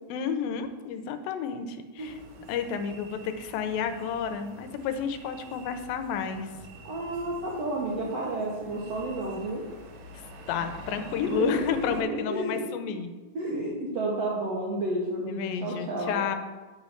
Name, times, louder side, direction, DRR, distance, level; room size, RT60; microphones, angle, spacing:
voice 1, 0.1-2.2 2.5-6.5 10.5-13.1 15.3-16.4, left 7 dB, 85° left, 9 dB, 2.4 m, -31 dB
sound 1, 2.0-12.0, right 1 dB, 85° right, 2.6 m, -47 dB
voice 2, 6.9-9.6 11.3-12.6 13.3-16.2, right 2 dB, 70° right, -3 dB, 1.5 m, -31 dB
9.3 x 3.1 x 6.3 m, 1.2 s
omnidirectional pair, 4.0 m